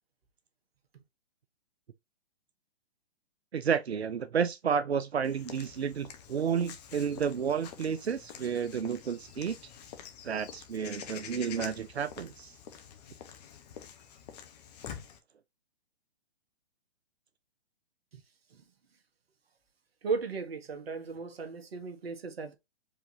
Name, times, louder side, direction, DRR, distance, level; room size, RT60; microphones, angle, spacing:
voice 1, 3.5-9.6 10.2-12.6, right 7 dB, 90° right, 0.6 m, -31 dB
Walk footsteps / Bird vocalization bird call bird song, 5.2-15.2, left 8 dB, 40° left, 1.2 m, -47 dB
voice 2, 20.0-22.6, right 5 dB, 70° right, 1.4 m, -36 dB
5.2 x 3.6 x 2.8 m
figure-of-eight pair, 130°, 31 cm